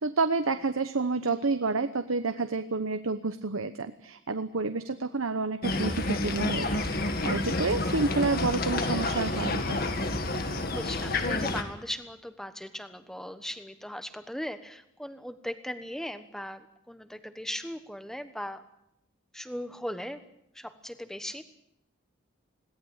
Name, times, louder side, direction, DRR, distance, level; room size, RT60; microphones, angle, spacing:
voice 1, 0.0-6.7 7.2-9.8, right 3 dB, 80° right, 9 dB, 1.0 m, -29 dB
sound 1, 5.6-11.6, left 2 dB, 45° left, 2.1 m, -29 dB
voice 2, 10.7-18.6 19.3-20.2 20.5-21.4, equal, ahead, 10 dB, 1.1 m, -38 dB
21.5 x 17.5 x 8.9 m, 0.81 s
head